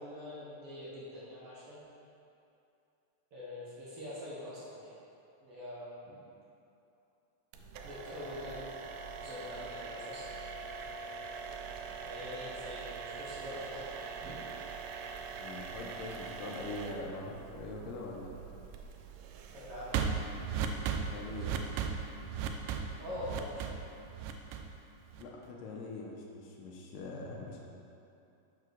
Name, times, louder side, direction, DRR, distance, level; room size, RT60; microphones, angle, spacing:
voice 1, 0.0-1.8 3.3-5.0 5.4-6.2 7.8-8.7 9.2-10.2 12.0-14.4 19.5-20.0 23.0-23.7, left 1 dB, 50° right, -9 dB, 2.1 m, -44 dB
sound 1, 7.5-25.5, right 6 dB, 85° right, 2.2 m, -40 dB
voice 2, 15.4-18.3 21.0-21.6 25.2-27.6, left 2 dB, 80° left, -1 dB, 2.4 m, -43 dB
6.7 x 4.8 x 6.3 m, 2.7 s
omnidirectional pair, 3.9 m